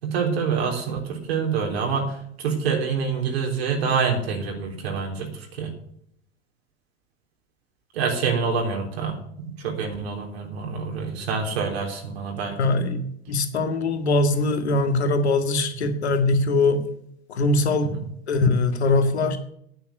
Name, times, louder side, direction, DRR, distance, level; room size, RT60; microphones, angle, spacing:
voice 1, 0.0-5.7 7.9-12.8 17.8-18.1, right 5 dB, 70° right, 1 dB, 3.6 m, -26 dB
voice 2, 12.6-13.0 13.3-16.8 17.3-17.9 18.3-19.4, left 2 dB, 80° left, 7 dB, 2.0 m, -21 dB
9.4 x 9.4 x 7.8 m, 0.70 s
hypercardioid pair, 95°, 32 cm